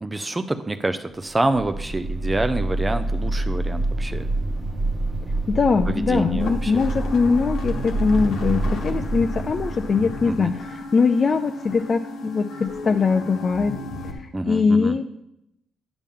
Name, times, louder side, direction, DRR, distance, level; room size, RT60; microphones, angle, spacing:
voice 1, 0.0-4.3 5.9-6.9 10.3-10.5 14.3-15.0, right 2 dB, 20° right, 10 dB, 0.5 m, -27 dB
sound 1, 1.3-10.6, right 2 dB, 35° right, 1.2 m, -27 dB
voice 2, 5.5-13.8 14.2-15.0, left 5 dB, 40° left, 5 dB, 0.4 m, -22 dB
sound 2, 6.4-14.1, left 2 dB, 80° left, 1.2 m, -34 dB
10.0 x 6.9 x 3.7 m, 0.83 s
cardioid pair, 90°, 0 cm